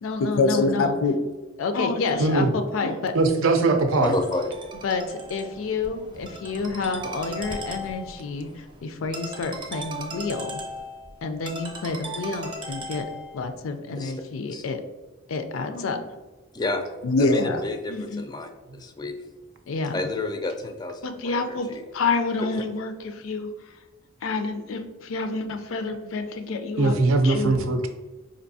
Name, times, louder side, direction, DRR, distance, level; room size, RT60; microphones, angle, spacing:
voice 1, 0.0-1.2 1.6-3.1 4.8-8.5 8.8-10.6 11.2-13.1 13.3-14.8 15.3-16.1 17.0-17.6 17.9-18.3 19.7-20.0 21.0-23.5 24.2-27.0 27.2-27.6, left 3 dB, 90° left, 7 dB, 0.4 m, -27 dB
voice 2, 2.2-2.5 3.1-4.1 26.8-27.9, right 3 dB, 85° right, 6 dB, 0.5 m, -20 dB
Ringtone, 3.9-13.5, right 1 dB, 25° right, 0.6 m, -38 dB
voice 3, 4.0-4.5 6.0-6.1 13.9-14.2 14.5-14.6 16.5-16.9 17.2-19.1 19.9-21.8 22.4-22.5, left 2 dB, 20° left, 6 dB, 0.3 m, -30 dB
4.4 x 2.6 x 2.6 m, 1.2 s
head